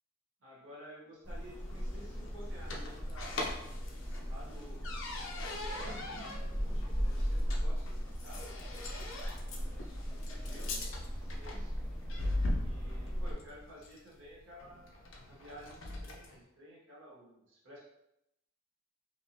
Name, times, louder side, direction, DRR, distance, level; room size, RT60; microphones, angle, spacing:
voice 1, 0.4-3.6 4.2-4.9 5.3-6.1 6.6-8.8 9.4-10.8 11.2-11.8 12.5-17.8, equal, 65° right, -5 dB, 1.3 m, -53 dB
sound 1, 1.2-13.3, equal, 10° left, 0.8 m, -38 dB
sound 2, 1.3-16.4, left 2 dB, 65° left, 0.6 m, -41 dB
4.4 x 2.7 x 2.8 m, 0.83 s
head